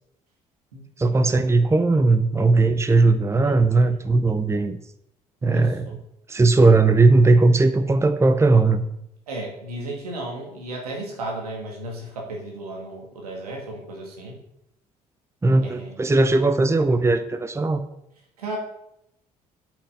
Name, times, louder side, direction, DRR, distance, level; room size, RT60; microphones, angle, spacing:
voice 1, 1.0-4.8 5.4-6.0 6.3-8.8 15.4-17.8, right 3 dB, 15° right, 10 dB, 0.8 m, -18 dB
voice 2, 3.4-4.0 5.4-5.9 9.3-14.4 15.6-15.9 18.4-18.6, right 2 dB, 80° right, 0 dB, 2.2 m, -34 dB
8.5 x 6.2 x 5.5 m, 0.79 s
figure-of-eight pair, 55°, 19 cm